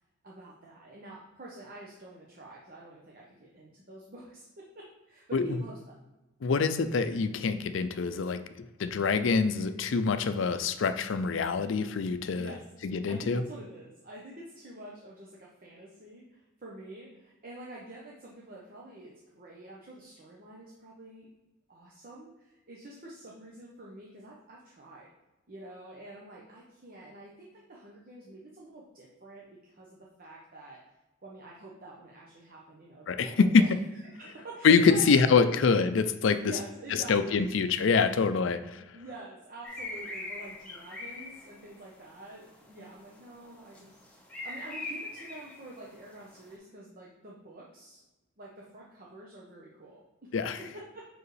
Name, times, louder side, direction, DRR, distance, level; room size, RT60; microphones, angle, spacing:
voice 1, 0.2-5.9 12.4-12.6 13.1-21.3 21.7-25.1 25.5-30.8 31.2-35.1 35.5-35.6 36.4-37.5 38.9-44.0 44.4-48.0 48.4-50.3 50.6-51.1, right 2 dB, 45° right, -4 dB, 0.9 m, -47 dB
voice 2, 6.4-12.5 12.8-13.4 33.1-33.8 34.6-36.4 37.1-38.8 50.3-50.6, left 5 dB, 65° left, 10 dB, 0.4 m, -25 dB
sound 1, 39.6-46.5, left 2 dB, 5° left, 1.1 m, -43 dB
6.2 x 4.7 x 3.3 m, 1.0 s
head